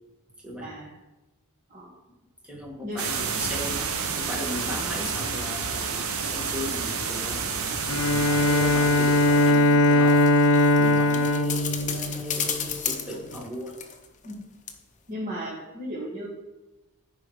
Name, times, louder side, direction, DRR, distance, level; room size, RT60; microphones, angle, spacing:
voice 1, 0.6-0.9 1.7-2.0 2.8-3.2 7.9-8.1 14.2-14.5 15.1-16.3, equal, 35° right, -7 dB, 1.6 m, -36 dB
voice 2, 2.4-3.9 4.2-7.4 7.9-10.2 10.8-13.8, equal, 5° right, -2 dB, 1.6 m, -37 dB
sound 1, 3.0-9.5, right 5 dB, 80° right, 0.9 m, -30 dB
sound 2, 7.4-14.4 14.7-14.8, left 7 dB, 35° left, 0.8 m, -35 dB
Bowed string instrument, 7.9-12.7, left 1 dB, 80° left, 0.4 m, -20 dB
14.5 x 4.9 x 3.2 m, 1.0 s
head